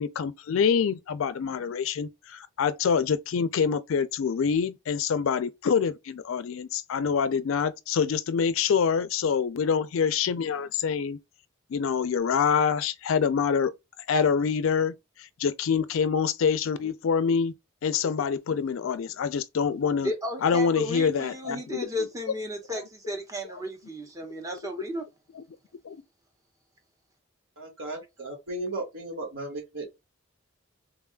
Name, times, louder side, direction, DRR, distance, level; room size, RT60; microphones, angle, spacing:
voice 1, 0.0-11.2 11.7-13.7 14.1-17.5 17.8-20.1 20.4-22.1 25.0-25.1 25.3-25.4 25.8-26.0, left 6 dB, 75° left, 0.4 m, -26 dB
voice 2, 20.0-25.0, left 1 dB, 15° right, 0.7 m, -33 dB
voice 3, 27.6-29.9, right 2 dB, 70° right, 1.4 m, -35 dB
3.6 x 2.2 x 2.3 m
head